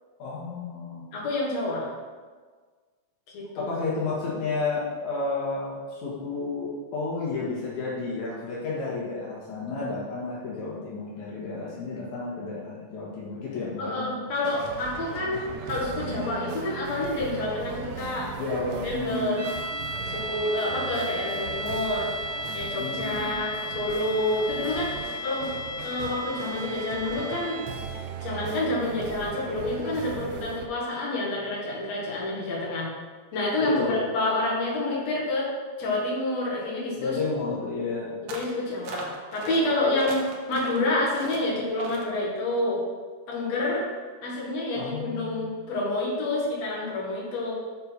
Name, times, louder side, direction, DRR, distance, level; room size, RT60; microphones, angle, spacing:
voice 1, 0.2-1.0 3.6-14.1 16.0-16.3 18.4-19.5 22.8-23.4 24.4-24.6 33.6-34.0 37.0-38.2 44.7-45.5, left 3 dB, 80° left, -6 dB, 3.0 m, -32 dB
voice 2, 1.1-1.8 3.3-3.6 13.8-18.3 18.8-19.4 20.1-22.1 22.5-25.5 25.8-27.6 28.2-32.9 33.3-35.5 35.8-37.2 38.2-42.8 43.3-43.8 44.2-47.5, left 2 dB, 65° left, -5 dB, 3.0 m, -28 dB
sound 1, 14.4-30.7, right 7 dB, 85° right, 2.1 m, -39 dB
sound 2, 19.4-28.1, left 1 dB, 15° right, 1.1 m, -35 dB
sound 3, 38.3-38.6 38.8-39.6 40.0-40.8 41.1-41.4 41.8-42.1, right 4 dB, 70° right, 1.9 m, -39 dB
6.8 x 5.5 x 6.0 m, 1.5 s
omnidirectional pair, 3.3 m